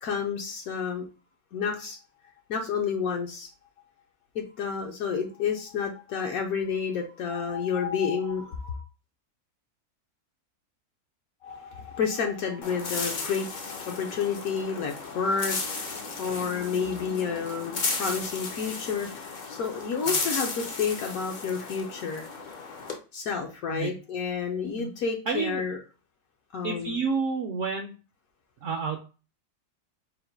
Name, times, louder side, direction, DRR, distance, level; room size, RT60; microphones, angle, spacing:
voice 1, 0.0-1.0 1.5-2.0 2.5-3.5 4.3-8.8 11.4-22.3 23.1-25.8 26.5-27.0, left 6 dB, 70° left, 1 dB, 1.1 m, -30 dB
sound 1, 12.6-23.0, left 4 dB, 55° left, 0.5 m, -34 dB
voice 2, 25.3-25.6 26.6-27.9 28.6-29.0, right 5 dB, 65° right, 3 dB, 0.8 m, -30 dB
3.9 x 2.1 x 4.4 m, 0.34 s
omnidirectional pair, 1.6 m